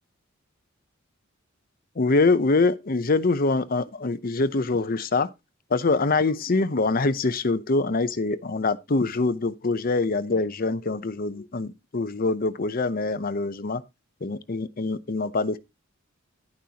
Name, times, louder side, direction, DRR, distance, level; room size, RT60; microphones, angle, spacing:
voice 1, 2.0-5.3 5.7-13.8 14.2-15.6, left 3 dB, 45° left, 0.7 m, -24 dB
11.0 x 10.0 x 2.9 m
head